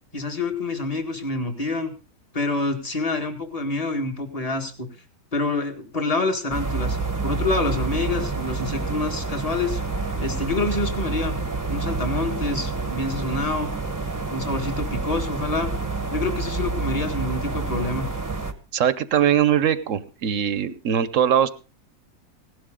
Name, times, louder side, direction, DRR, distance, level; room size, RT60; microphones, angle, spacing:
voice 1, 0.1-1.9 2.3-4.9 5.3-7.0 7.2-9.8 10.2-11.4 11.7-13.7 14.3-15.7 16.1-18.1, left 3 dB, 25° left, 5 dB, 1.8 m, -27 dB
sound 1, 6.5-18.5, right 4 dB, 15° right, 0.9 m, -28 dB
voice 2, 18.7-21.5, right 9 dB, 60° right, 15 dB, 1.1 m, -21 dB
17.0 x 11.5 x 3.7 m, 0.33 s
omnidirectional pair, 1.6 m